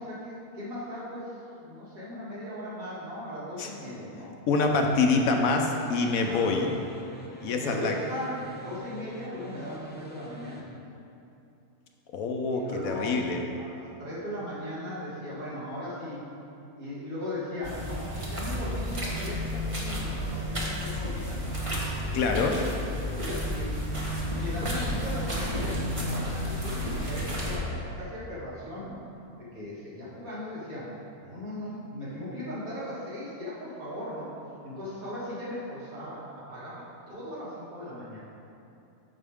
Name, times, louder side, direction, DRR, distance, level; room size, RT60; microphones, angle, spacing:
voice 1, 0.0-4.3 6.3-6.8 7.6-10.7 12.5-13.2 13.6-16.2 16.8-21.5 22.0-22.7 23.1-23.8 24.3-29.0 29.5-30.9 31.2-34.3 34.6-38.2, left 1 dB, 65° right, -9 dB, 2.5 m, -38 dB
voice 2, 4.5-6.7 7.4-7.9 12.1-13.4 22.1-22.6, left 4 dB, 70° left, 3 dB, 1.0 m, -25 dB
sound 1, 4.8-10.6, right 1 dB, 10° left, 0.4 m, -44 dB
sound 2, 17.6-27.6, equal, 25° right, 0.9 m, -32 dB
9.0 x 6.5 x 3.5 m, 2.7 s
omnidirectional pair, 1.6 m